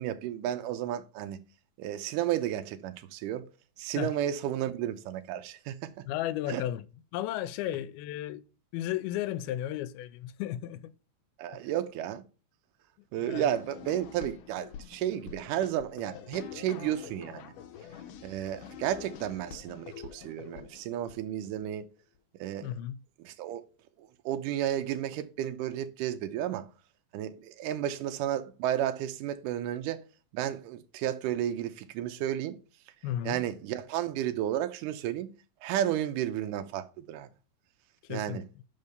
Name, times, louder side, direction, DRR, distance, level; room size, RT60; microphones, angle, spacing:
voice 1, 0.0-1.4 1.8-3.4 3.8-5.9 6.5-6.6 11.4-12.2 13.1-17.5 18.2-21.9 22.4-22.7 23.2-23.6 24.0-26.7 27.1-30.0 30.3-32.6 33.3-35.3 35.6-37.3 38.1-38.4, right 11 dB, 75° right, 2.1 m, -32 dB
voice 2, 6.1-6.9 7.1-8.4 8.7-10.9 13.0-13.5 22.6-23.0 33.0-33.4 38.0-38.6, left 12 dB, 90° left, 2.5 m, -34 dB
sound 1, 13.3-21.7, left 9 dB, 75° left, 2.0 m, -46 dB
5.6 x 5.5 x 6.6 m
omnidirectional pair, 4.3 m